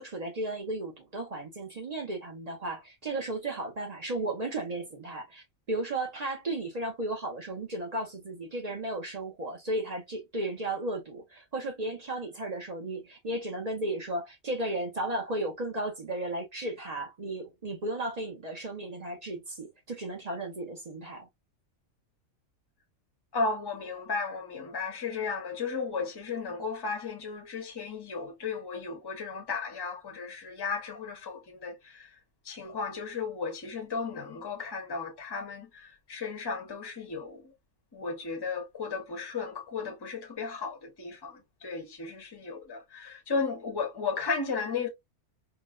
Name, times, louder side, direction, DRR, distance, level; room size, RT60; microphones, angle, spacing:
voice 1, 0.0-21.3, right 1 dB, 40° right, 0.6 m, -34 dB
voice 2, 23.3-32.1 32.5-37.4 37.9-44.9, left 4 dB, 25° left, 0.6 m, -34 dB
3.8 x 2.0 x 2.3 m
omnidirectional pair, 1.4 m